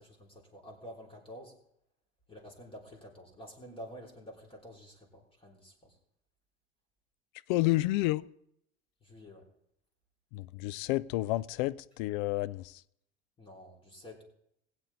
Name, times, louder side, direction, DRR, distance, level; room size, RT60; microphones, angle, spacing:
voice 1, 0.0-1.6 2.3-6.0 9.0-9.5 13.4-14.2, equal, 15° left, 3.4 m, -49 dB
voice 2, 7.5-8.3 10.3-12.8, left 18 dB, 50° left, 0.5 m, -30 dB
20.0 x 8.2 x 4.1 m
figure-of-eight pair, 70°, 31 cm